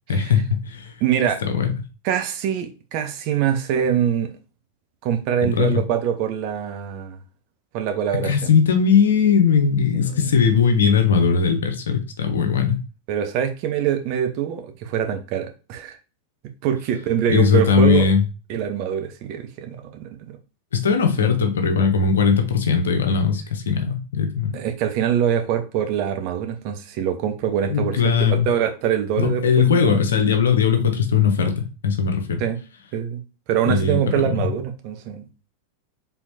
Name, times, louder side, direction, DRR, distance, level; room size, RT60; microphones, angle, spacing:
voice 1, 0.1-0.9 1.4-1.7 5.4-5.8 8.1-12.8 17.3-18.2 20.7-24.6 27.7-28.5 29.2-32.4 33.7-34.0 34.3-34.5, left 6 dB, 65° left, 0.8 m, -19 dB
voice 2, 1.0-1.4 2.0-4.3 5.0-7.2 7.7-8.5 10.1-10.3 13.1-16.0 16.6-18.1 18.5-20.4 24.5-30.0 32.4-32.6 32.9-33.2 33.5-35.3, right 9 dB, 45° right, 0.7 m, -24 dB
4.5 x 3.6 x 2.7 m
figure-of-eight pair, 90°, 0 cm